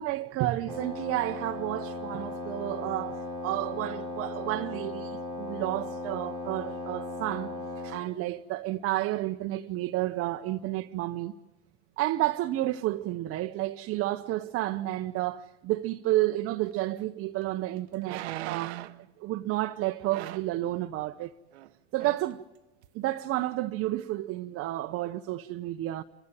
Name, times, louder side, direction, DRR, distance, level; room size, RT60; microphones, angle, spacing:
voice 1, 0.0-7.5 7.8-11.3 12.0-18.8 19.2-21.3 21.9-22.4 22.9-26.0, right 16 dB, 45° right, 0.8 m, -31 dB
Wind instrument woodwind instrument, 0.7-8.1, left 2 dB, 15° left, 4.3 m, -37 dB
sound 1, 17.0-17.1 18.0-19.0 20.1-20.6 21.5-21.7 22.0-22.3 22.8-22.9, right 16 dB, 80° right, 0.9 m, -38 dB
29.5 x 15.0 x 9.2 m
hypercardioid pair, 95°, 33 cm